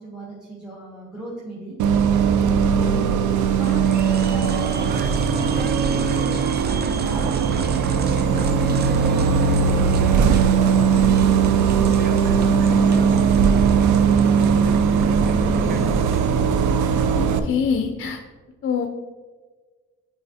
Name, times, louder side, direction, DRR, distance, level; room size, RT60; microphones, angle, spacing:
voice 1, 0.0-1.8 2.7-3.2 3.5-14.9, right 1 dB, 5° right, -5 dB, 1.4 m, -36 dB
Bus, 1.8-17.4, right 6 dB, 80° right, 0.5 m, -19 dB
sound 1, 3.6-16.3, right 5 dB, 35° right, 0.5 m, -36 dB
voice 2, 17.1-18.2 18.6-18.9, left 6 dB, 45° left, 4 dB, 0.5 m, -24 dB
7.9 x 4.8 x 2.7 m, 1.4 s
cardioid pair, 90°, 30 cm